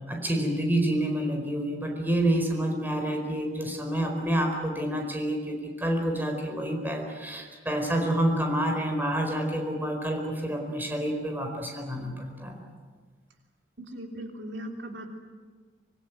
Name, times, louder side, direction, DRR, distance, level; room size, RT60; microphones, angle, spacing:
voice 1, 0.1-12.6, right 1 dB, 10° right, 2 dB, 4.6 m, -28 dB
voice 2, 13.8-15.1, right 1 dB, 70° right, 2 dB, 3.3 m, -38 dB
25.0 x 22.0 x 9.2 m, 1.5 s
head